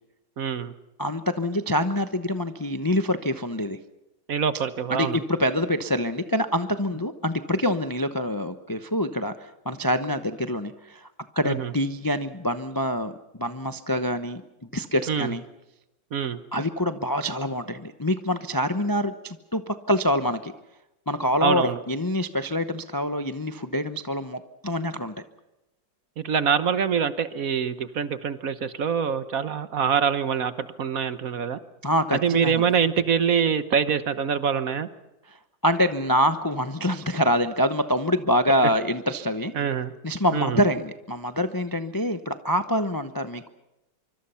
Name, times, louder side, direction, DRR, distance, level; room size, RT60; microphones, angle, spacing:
voice 1, 0.4-0.7 4.3-5.2 11.4-11.7 15.1-15.3 16.1-16.4 21.4-21.8 26.2-31.6 32.1-34.9 39.5-39.9 40.3-40.6, right 7 dB, 55° right, 12 dB, 1.3 m, -25 dB
voice 2, 1.0-3.8 4.9-11.1 11.4-14.4 14.7-15.4 16.5-20.5 21.1-25.1 31.8-32.6 35.6-39.5 40.0-43.5, equal, 25° left, 9 dB, 0.5 m, -25 dB
25.5 x 24.5 x 5.7 m, 0.93 s
omnidirectional pair, 2.0 m